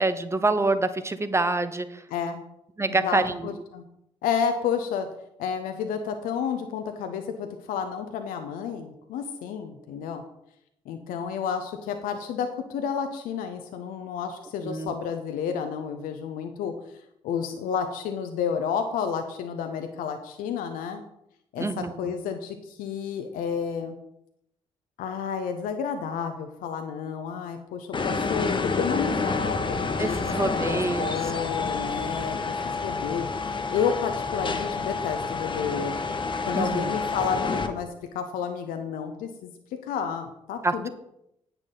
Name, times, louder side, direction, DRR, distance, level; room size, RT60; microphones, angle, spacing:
voice 1, 0.0-2.0 2.8-3.5 14.6-14.9 21.6-22.1 30.0-31.1 36.5-36.9 40.6-40.9, right 2 dB, 15° right, 11 dB, 1.1 m, -26 dB
voice 2, 2.1-2.4 2.9-3.8 4.2-5.1 5.4-10.2 10.9-21.0 21.5-23.9 25.0-30.1 30.4-32.5 32.8-36.0 36.5-39.5 39.8-40.9, left 7 dB, 60° left, 6 dB, 0.9 m, -31 dB
sound 1, 27.9-37.7, left 4 dB, 30° left, 1.3 m, -29 dB
10.0 x 9.0 x 3.9 m, 0.79 s
figure-of-eight pair, 40°, 16 cm